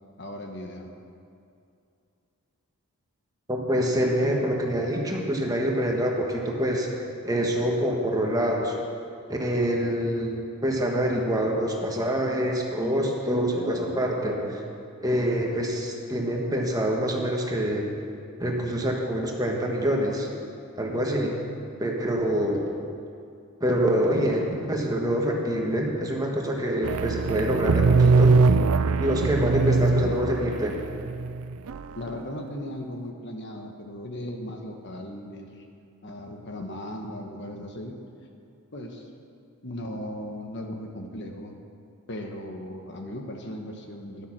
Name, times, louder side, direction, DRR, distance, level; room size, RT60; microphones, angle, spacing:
voice 1, 0.2-0.9 29.6-29.7 31.9-35.6 36.0-38.0 38.7-39.1 39.6-41.5 42.1-44.3, left 1 dB, 50° left, 3 dB, 1.2 m, -37 dB
voice 2, 3.5-6.9 7.2-8.7 9.3-14.6 15.0-17.9 18.4-20.3 20.8-21.3 21.8-22.6 23.6-28.4 29.0-30.7, equal, 15° right, 0 dB, 1.4 m, -26 dB
sound 1, 26.8-31.8, right 4 dB, 70° right, 0.4 m, -21 dB
13.0 x 11.0 x 6.1 m, 2.5 s
head